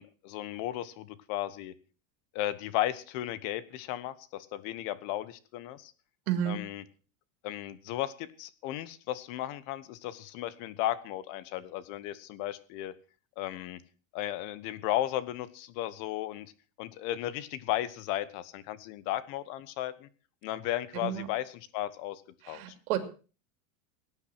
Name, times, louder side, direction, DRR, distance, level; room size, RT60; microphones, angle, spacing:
voice 1, 0.0-1.7 2.3-5.9 6.5-6.8 7.4-12.9 13.4-13.8 14.1-16.5 16.8-20.1 20.4-22.2 22.5-22.6, left 13 dB, 45° left, 16 dB, 1.2 m, -35 dB
voice 2, 6.3-6.6 20.9-21.3 22.4-23.0, right 11 dB, 80° right, 9 dB, 3.0 m, -31 dB
18.0 x 9.7 x 6.0 m, 0.38 s
cardioid pair, 180°, 43 cm